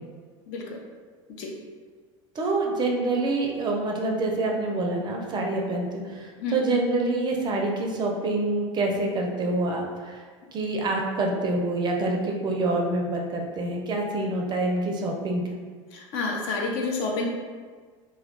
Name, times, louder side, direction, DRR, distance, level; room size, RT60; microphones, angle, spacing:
voice 1, 0.5-0.8 1.4-1.5 6.4-6.6 15.9-17.2, left 3 dB, 60° left, -1 dB, 0.6 m, -29 dB
voice 2, 2.4-10.2 10.5-15.6, right 2 dB, 30° right, 1 dB, 0.5 m, -26 dB
2.2 x 2.2 x 3.6 m, 1.6 s
supercardioid pair, 105°, 15 cm